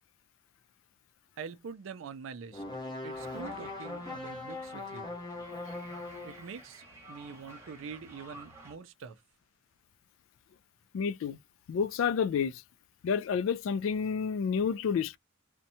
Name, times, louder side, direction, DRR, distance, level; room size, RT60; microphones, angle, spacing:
voice 1, 1.4-2.6 3.0-5.2 6.2-9.2, right 6 dB, 70° right, 0.4 m, -45 dB
sound 1, 2.5-6.5, left 2 dB, 20° left, 0.9 m, -40 dB
sound 2, 3.1-8.8, right 2 dB, 15° right, 1.2 m, -52 dB
voice 2, 10.9-11.4 11.7-12.6 13.0-15.2, left 6 dB, 70° left, 0.3 m, -29 dB
2.7 x 2.1 x 2.6 m
head